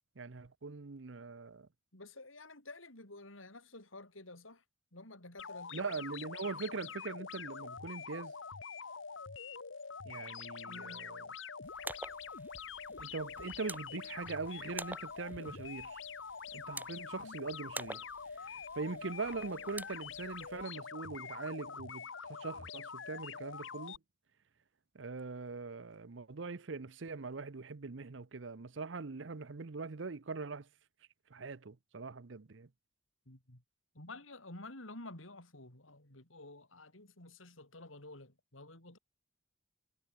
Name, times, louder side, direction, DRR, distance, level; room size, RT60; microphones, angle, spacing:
voice 1, 0.2-1.7 5.7-8.3 10.0-11.3 12.9-16.0 16.5-18.1 18.4-24.0 24.9-30.7 31.3-32.7, right 4 dB, 65° right, 0.8 m, -42 dB
voice 2, 1.9-4.6 4.9-6.2 10.7-11.1 33.3-33.6 33.9-39.0, left 2 dB, 90° left, 6.0 m, -51 dB
sound 1, 5.4-24.0, left 6 dB, 70° left, 1.3 m, -45 dB
sound 2, 11.6-20.6, right 2 dB, 10° right, 7.6 m, -49 dB
head